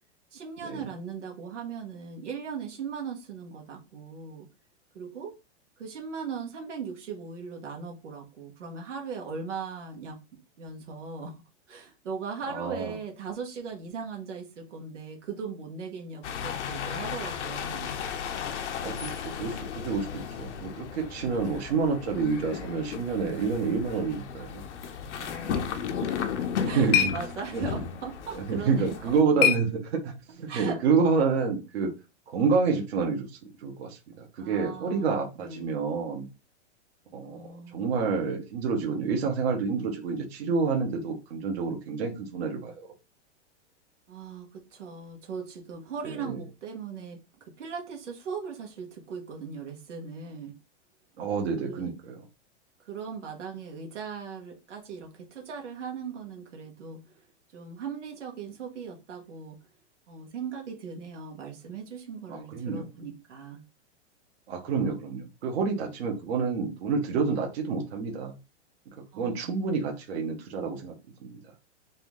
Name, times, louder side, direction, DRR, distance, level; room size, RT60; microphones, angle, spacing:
voice 1, 0.3-4.5 4.9-5.3 5.8-10.2 10.6-11.4 11.7-17.9 21.7-21.9 25.1-26.3 26.6-28.9 30.5-30.8 34.4-35.7 37.2-37.8 44.1-50.5 51.6-51.9 52.8-57.2 57.5-59.6 60.1-63.6 69.1-69.6, right 6 dB, 90° right, 1.6 m, -39 dB
voice 2, 12.5-12.9 18.8-24.7 26.6-27.1 27.5-27.6 28.3-31.9 32.3-36.3 37.1-42.9 46.0-46.4 51.2-52.2 62.3-62.9 64.5-68.3 68.9-70.9 71.2-71.4, right 5 dB, 60° right, 1.5 m, -28 dB
sound 1, 16.2-29.2, left 7 dB, 75° left, 0.9 m, -35 dB
sound 2, 26.2-30.4, left 9 dB, 30° left, 0.8 m, -31 dB
4.2 x 2.8 x 3.7 m
hypercardioid pair, 150°, 35 cm